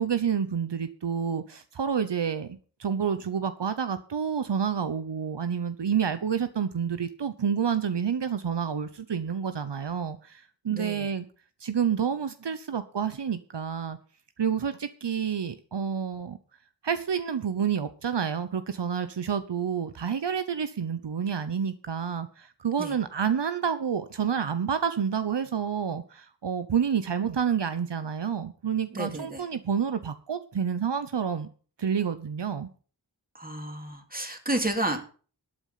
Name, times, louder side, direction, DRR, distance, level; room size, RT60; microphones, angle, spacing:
voice 1, 0.0-11.3 11.6-14.0 14.4-16.4 16.8-31.5 31.8-32.7, right 7 dB, 75° right, 11 dB, 0.9 m, -29 dB
voice 2, 10.7-11.1 22.8-22.9 28.9-29.4 33.3-35.0, right 1 dB, 20° right, 4 dB, 2.9 m, -31 dB
12.5 x 8.6 x 5.7 m, 0.39 s
wide cardioid pair, 50°, 42 cm